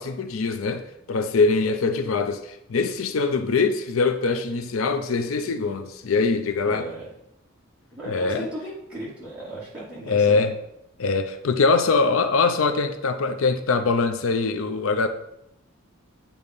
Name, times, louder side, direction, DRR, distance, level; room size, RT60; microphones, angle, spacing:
voice 1, 0.0-6.9 8.0-8.5 10.1-10.6 11.0-15.1, left 4 dB, 85° left, 0.5 m, -23 dB
voice 2, 6.6-7.1 7.9-10.5, right 1 dB, 5° right, 2.4 m, -36 dB
8.3 x 2.9 x 5.3 m
head